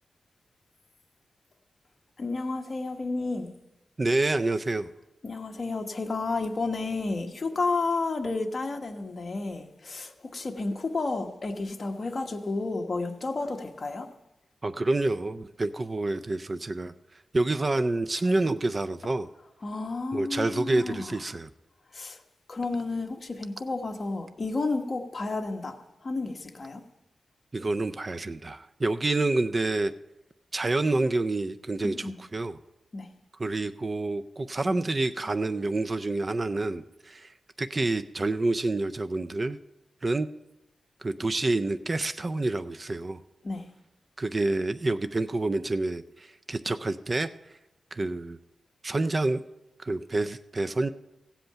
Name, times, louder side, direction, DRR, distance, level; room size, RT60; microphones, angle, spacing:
voice 1, 2.2-3.5 5.2-14.1 19.6-21.2 21.9-22.2 22.5-25.8 26.0-26.8 31.8-32.1 32.9-33.1 43.4-43.7, left 3 dB, 40° left, 1.3 m, -31 dB
voice 2, 4.0-4.9 14.6-16.9 17.3-19.3 20.1-21.5 27.5-29.9 30.5-32.6 33.4-39.6 40.0-40.3 41.0-43.2 44.2-47.3 47.9-48.4 48.8-49.4 49.8-50.9, right 2 dB, 30° right, 0.4 m, -28 dB
16.5 x 7.9 x 5.7 m
wide cardioid pair, 135°, 0 cm